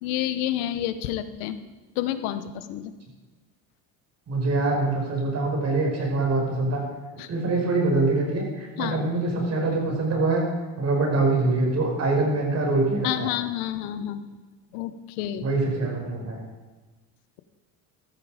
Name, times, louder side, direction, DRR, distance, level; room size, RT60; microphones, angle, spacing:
voice 1, 0.0-1.6 2.0-2.9 7.2-7.3 8.8-9.0 13.0-14.2 14.7-15.5, left 12 dB, 90° left, 12 dB, 1.1 m, -29 dB
voice 2, 4.3-6.8 7.3-10.4 10.8-13.3 15.4-16.4, right 3 dB, 40° right, 0 dB, 5.4 m, -24 dB
14.5 x 13.5 x 5.0 m, 1.2 s
supercardioid pair, 100°, 39 cm